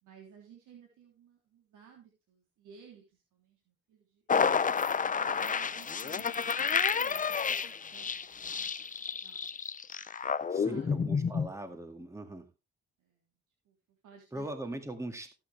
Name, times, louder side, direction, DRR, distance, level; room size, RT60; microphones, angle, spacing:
voice 1, 0.0-4.7 5.2-6.4 6.7-9.5 10.2-11.0 13.0-13.3 13.6-14.8, right 7 dB, 80° right, 0 dB, 3.3 m, -57 dB
sound 1, 4.3-11.5, left 6 dB, 25° left, 0.6 m, -30 dB
voice 2, 10.5-12.5 14.3-15.3, right 1 dB, 10° right, 6 dB, 2.0 m, -40 dB
16.0 x 8.7 x 3.3 m, 0.27 s
cardioid pair, 90°, 30 cm